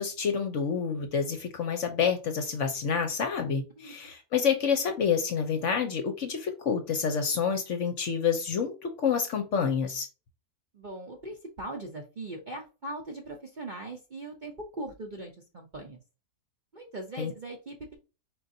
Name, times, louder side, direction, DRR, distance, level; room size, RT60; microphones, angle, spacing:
voice 1, 0.0-10.1 17.2-17.3, left 6 dB, 60° left, 0.9 m, -28 dB
voice 2, 10.7-16.0 16.7-17.9, right 2 dB, 40° right, 0.7 m, -40 dB
4.4 x 3.9 x 2.7 m
omnidirectional pair, 1.7 m